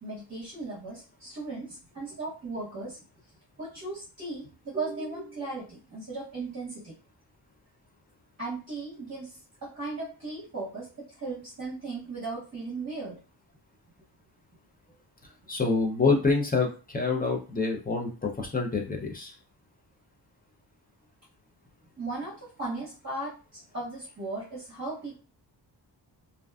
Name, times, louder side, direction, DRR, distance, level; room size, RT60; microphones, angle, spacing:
voice 1, 0.0-3.0 3.6-6.9 8.4-13.2 22.0-25.2, right 3 dB, 35° right, -7 dB, 0.9 m, -37 dB
voice 2, 15.5-19.3, left 4 dB, 20° left, 1 dB, 0.4 m, -26 dB
2.5 x 2.2 x 2.3 m, 0.34 s
wide cardioid pair, 145°, 44 cm